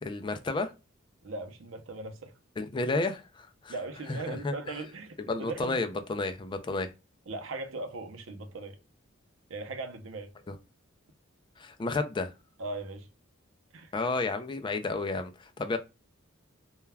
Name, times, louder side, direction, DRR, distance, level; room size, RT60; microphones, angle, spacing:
voice 1, 0.0-0.7 2.6-3.7 4.1-4.7 5.3-6.9 10.5-10.6 11.6-12.3 13.9-15.8, left 3 dB, 25° left, 0.3 m, -32 dB
voice 2, 1.2-2.3 3.7-5.8 7.3-8.8 9.5-10.3 12.6-13.1 13.7-13.9, right 2 dB, 80° right, 0.6 m, -39 dB
2.2 x 2.2 x 3.2 m
head